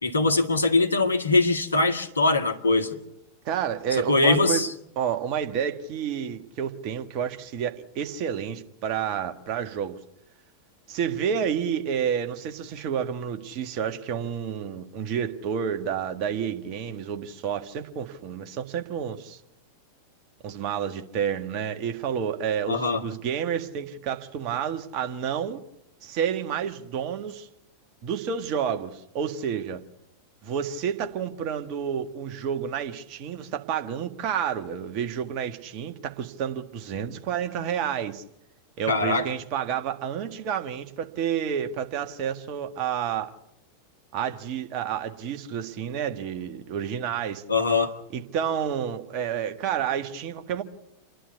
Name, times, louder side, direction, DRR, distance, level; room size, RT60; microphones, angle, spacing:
voice 1, 0.0-2.9 4.1-4.7 22.7-23.0 38.9-39.3 47.5-47.9, left 3 dB, 75° left, 2.0 m, -22 dB
voice 2, 3.4-4.7 4.9-10.0 10.9-19.4 20.4-25.6 26.0-27.5 28.0-29.8 30.4-38.2 38.8-43.4 44.1-47.4 48.1-50.6, right 8 dB, 40° right, 1.8 m, -30 dB
29.0 x 11.5 x 8.2 m
figure-of-eight pair, 90°, 0 cm